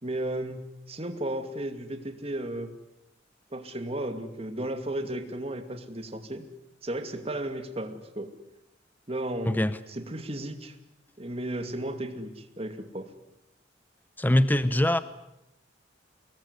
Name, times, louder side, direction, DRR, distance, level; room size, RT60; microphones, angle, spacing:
voice 1, 0.0-2.7 3.5-6.4 6.8-8.3 9.1-10.8 11.2-13.1, right 1 dB, 30° right, 7 dB, 2.5 m, -34 dB
voice 2, 9.4-9.8 14.2-15.0, left 1 dB, 10° left, 13 dB, 0.9 m, -23 dB
25.0 x 20.5 x 9.7 m, 0.87 s
head